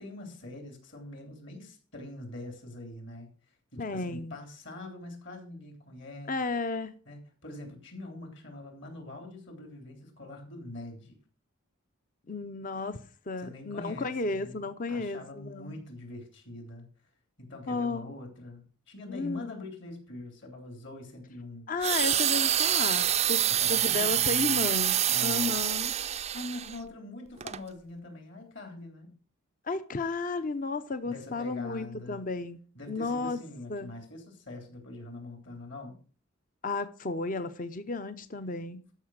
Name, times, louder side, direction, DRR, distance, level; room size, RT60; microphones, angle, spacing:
voice 1, 0.0-3.3 3.7-6.4 7.1-11.2 13.4-14.6 14.9-16.9 17.4-21.7 23.5-24.7 25.1-25.6 26.0-29.1 31.0-32.2 32.7-36.0, left 2 dB, 60° left, 4 dB, 3.5 m, -43 dB
voice 2, 3.8-4.4 6.3-6.9 12.3-13.0 13.3-15.8 17.7-18.1 19.1-19.5 21.7-25.9 29.7-32.6 32.9-33.4 33.7-33.9 36.6-39.0, left 3 dB, 40° left, 12 dB, 0.7 m, -33 dB
sound 1, 21.8-26.8 27.4-27.6, right 11 dB, 30° right, 0.4 m, -26 dB
13.0 x 5.8 x 6.3 m, 0.41 s
head